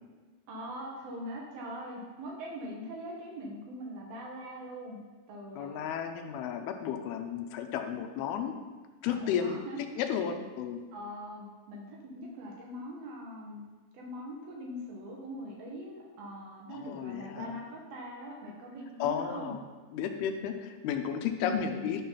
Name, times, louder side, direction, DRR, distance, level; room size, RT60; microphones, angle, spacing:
voice 1, 0.5-5.0 5.3-5.9 9.0-9.8 10.9-13.6 13.9-19.5 21.3-21.6, equal, 70° right, -2 dB, 3.0 m, -42 dB
voice 2, 5.6-8.5 9.0-9.6 10.0-10.8 16.7-17.5 19.0-19.6 19.9-22.0, left 8 dB, 85° left, 5 dB, 2.6 m, -33 dB
11.5 x 3.9 x 5.6 m, 1.3 s
omnidirectional pair, 4.5 m